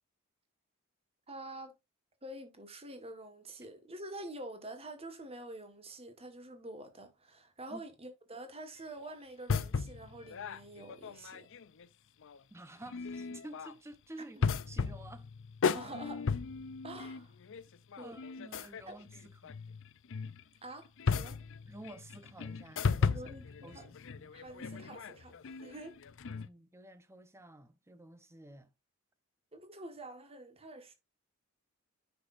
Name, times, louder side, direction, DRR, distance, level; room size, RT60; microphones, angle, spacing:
voice 1, 1.3-1.7 2.2-11.5 14.4-14.5 15.7-16.3 16.8-17.3 18.0-18.2 18.9-19.0 20.6-21.4 23.0-23.9 24.2-26.0 29.5-30.9, right 1 dB, 30° right, 1.5 m, -47 dB
sound 1, 9.5-11.9 12.2-12.4 12.8-13.7 14.4-20.4 20.8-26.5, left 5 dB, 60° left, 0.5 m, -36 dB
voice 2, 12.5-15.3 18.0-19.6 21.7-23.2 23.6-23.8 26.2-28.7, right 1 dB, 10° right, 0.8 m, -51 dB
9.4 x 6.1 x 2.5 m
head